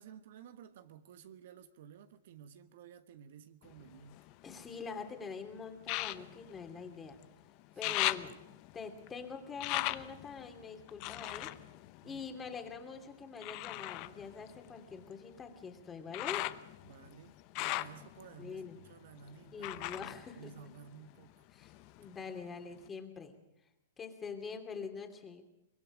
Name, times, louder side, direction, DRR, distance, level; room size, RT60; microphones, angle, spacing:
voice 1, 0.0-4.2 7.8-8.3 12.0-12.2 16.8-21.4, right 8 dB, 60° right, 1.2 m, -54 dB
sound 1, 3.6-5.0 5.8-7.3 7.6-12.8 13.4-21.2 21.6-22.4 22.9-23.0, left 18 dB, 45° left, 0.9 m, -40 dB
voice 2, 4.4-7.2 7.8-8.4 8.7-11.6 12.0-16.5 18.4-18.8 19.5-20.7 21.5-21.7 22.0-23.4 24.0-25.4, left 5 dB, 20° left, 2.9 m, -44 dB
23.5 x 21.5 x 5.0 m
hypercardioid pair, 115°, 0 cm